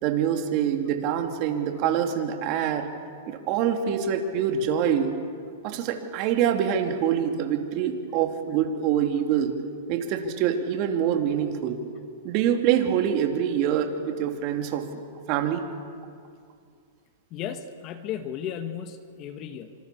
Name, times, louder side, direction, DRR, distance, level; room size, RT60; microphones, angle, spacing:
voice 1, 0.0-2.9 3.3-5.1 5.6-9.6 9.9-11.8 12.2-14.9 15.3-15.6, right 9 dB, 40° right, 4 dB, 3.0 m, -25 dB
voice 2, 17.3-19.7, left 9 dB, 35° left, 8 dB, 1.8 m, -35 dB
27.0 x 26.5 x 7.1 m, 2.2 s
hypercardioid pair, 140°, 0 cm